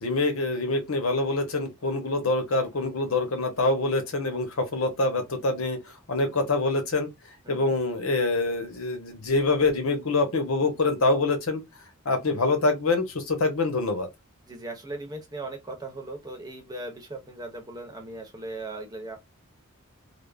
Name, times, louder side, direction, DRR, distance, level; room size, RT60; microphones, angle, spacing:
voice 1, 0.0-5.8 6.1-7.1 7.5-11.6 12.0-14.1, left 3 dB, 80° left, 0.9 m, -25 dB
voice 2, 7.4-7.8 14.4-19.2, right 2 dB, 20° right, 0.8 m, -38 dB
3.4 x 2.0 x 2.4 m
head